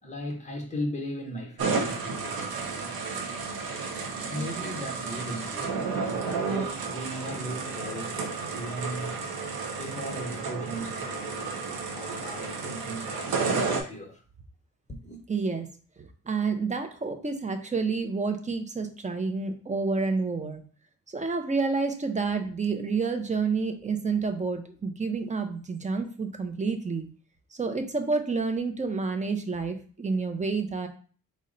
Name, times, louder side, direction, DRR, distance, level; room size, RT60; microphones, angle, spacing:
voice 1, 0.0-3.0 4.3-8.2 8.5-9.1 9.8-14.2 14.9-15.2, equal, 20° left, 0.9 m, -37 dB
sound 1, 1.6-13.8, right 4 dB, 85° right, 0.7 m, -32 dB
voice 2, 15.3-15.7 16.0-20.6 21.1-27.1 27.5-30.9, right 4 dB, 20° right, 0.5 m, -29 dB
4.1 x 2.1 x 3.8 m
cardioid pair, 115°, 35 cm